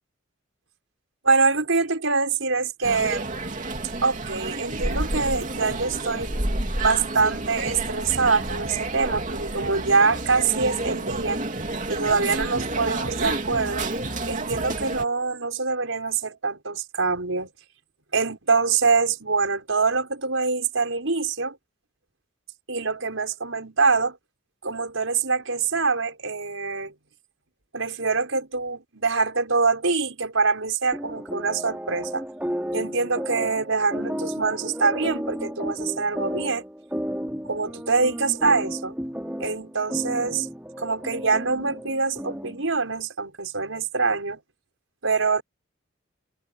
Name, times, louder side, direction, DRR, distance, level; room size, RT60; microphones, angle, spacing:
voice 1, 1.2-3.2 4.0-6.3 6.8-11.4 11.9-13.9 14.3-17.5 18.1-21.6 22.7-24.2 24.6-26.9 27.7-32.2 32.7-36.6 37.5-38.9 39.4-40.5 40.8-44.4 45.0-45.4, right 4 dB, 85° right, 5.3 m, -24 dB
sound 1, 2.8-15.0, right 2 dB, 40° right, 3.1 m, -30 dB
sound 2, 30.9-42.7, equal, 5° right, 3.9 m, -33 dB
head